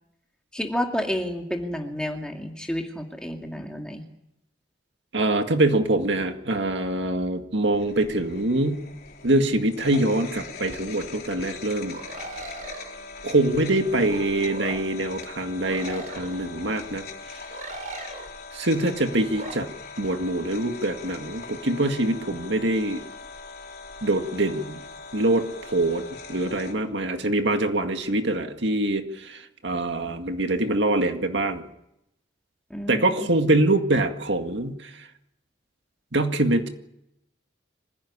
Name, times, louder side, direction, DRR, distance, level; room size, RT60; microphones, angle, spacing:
voice 1, 0.5-4.0 32.7-33.3, equal, 5° left, 2 dB, 2.4 m, -30 dB
voice 2, 5.1-8.8 9.2-12.0 13.2-17.0 17.3-17.4 18.5-19.7 20.0-23.0 24.0-24.8 25.1-31.6 32.9-34.9 36.1-36.7, right 2 dB, 65° right, 6 dB, 2.0 m, -24 dB
sound 1, 7.7-26.7, left 4 dB, 50° left, 3.6 m, -41 dB
sound 2, 11.9-12.9 14.0-14.8 15.7-16.5 17.5-18.3 19.3-19.5, right 2 dB, 40° right, 4.1 m, -38 dB
25.5 x 16.5 x 9.8 m, 0.82 s
head